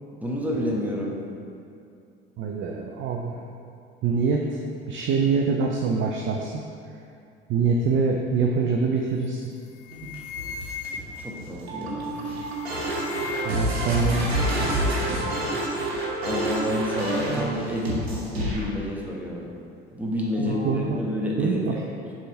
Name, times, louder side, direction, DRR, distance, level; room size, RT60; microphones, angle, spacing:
voice 1, 0.2-1.2 11.2-12.3 16.2-19.5 19.9-22.0, left 1 dB, 5° right, -4 dB, 1.2 m, -29 dB
voice 2, 2.4-3.4 4.0-4.6 4.9-6.5 7.5-9.5 13.4-14.6 20.4-21.0 21.4-21.8, right 4 dB, 40° right, 0 dB, 0.6 m, -25 dB
sound 1, 9.2-9.5 9.8-11.4 12.2-13.7 14.0-14.8, left 6 dB, 45° left, 0.4 m, -39 dB
sound 2, 9.9-18.7 20.3-20.8, right 1 dB, 85° right, 1.0 m, -28 dB
6.6 x 3.7 x 4.2 m, 2.5 s
figure-of-eight pair, 65°, 31 cm